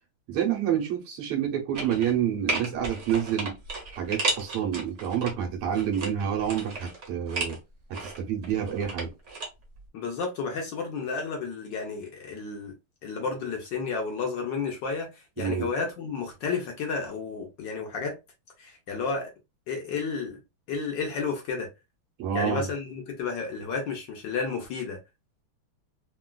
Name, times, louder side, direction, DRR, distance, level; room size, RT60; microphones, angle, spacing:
voice 1, 0.3-3.6 3.9-7.6 7.9-9.1 15.4-15.7 22.2-22.7, right 9 dB, 85° right, 1.7 m, -28 dB
sound 1, 1.7-2.2 2.5-5.3 5.7-7.6 7.9-9.5 9.8-9.9, right 3 dB, 50° right, 0.9 m, -33 dB
voice 2, 9.9-12.7 13.0-18.2 18.6-19.3 19.7-20.4 20.7-21.7 22.3-25.0, left 5 dB, 65° left, 1.3 m, -32 dB
3.8 x 2.3 x 2.2 m
omnidirectional pair, 2.4 m